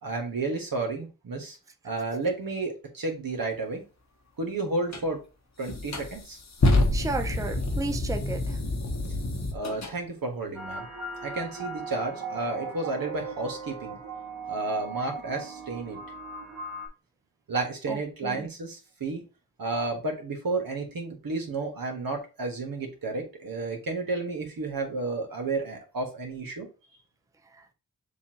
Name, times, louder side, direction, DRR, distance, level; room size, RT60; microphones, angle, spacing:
voice 1, 0.0-1.6 1.8-3.8 4.4-5.2 5.6-6.4 9.5-10.9 11.2-14.0 14.5-16.0 17.5-19.2 19.6-26.7, right 3 dB, 75° right, 1.5 m, -32 dB
sound 1, 4.9-5.1 5.7-9.9, left 2 dB, 50° left, 1.0 m, -27 dB
voice 2, 6.9-8.6 17.9-18.5, right 3 dB, 10° right, 0.6 m, -33 dB
sound 2, 10.5-16.9, right 4 dB, 55° right, 1.7 m, -38 dB
6.9 x 2.6 x 2.9 m
cardioid pair, 55°, 35 cm